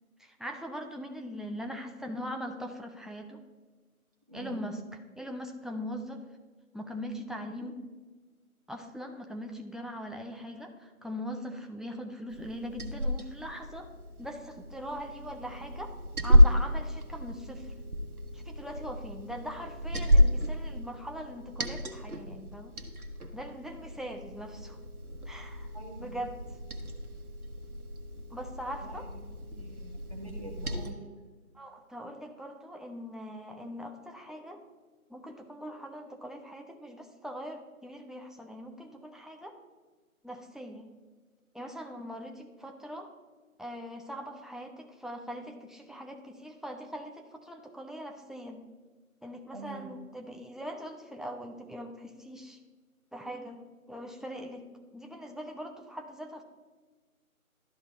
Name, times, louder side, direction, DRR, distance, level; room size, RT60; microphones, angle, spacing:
voice 1, 0.2-3.4 4.3-4.8 5.2-6.2 6.7-7.8 8.7-13.9 14.2-15.9 16.2-17.7 18.3-22.7 23.3-24.8 25.3-25.7 26.0-26.4 28.3-29.1 31.5-34.6 35.1-39.6 40.2-40.9 41.5-43.1 43.6-48.6 49.2-52.6 53.1-53.6 53.9-54.6 54.9-56.4, equal, ahead, 3 dB, 0.4 m, -41 dB
voice 2, 4.3-4.7 25.7-26.2 28.8-31.1 49.5-49.9, right 2 dB, 25° right, -2 dB, 1.1 m, -45 dB
Liquid, 12.3-30.9, left 1 dB, 85° right, 1.2 m, -30 dB
12.5 x 4.5 x 2.6 m, 1.4 s
figure-of-eight pair, 175°, 43 cm